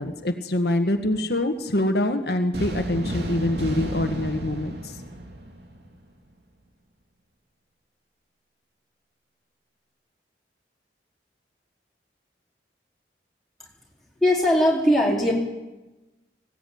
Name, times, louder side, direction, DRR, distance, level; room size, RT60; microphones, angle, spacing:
voice 1, 0.0-5.0, left 1 dB, 65° left, 5 dB, 1.6 m, -25 dB
sound 1, 2.5-6.0, right 1 dB, 70° right, 2.7 m, -32 dB
voice 2, 14.2-15.3, left 1 dB, ahead, -4 dB, 4.4 m, -19 dB
19.5 x 17.0 x 9.3 m, 1.1 s
head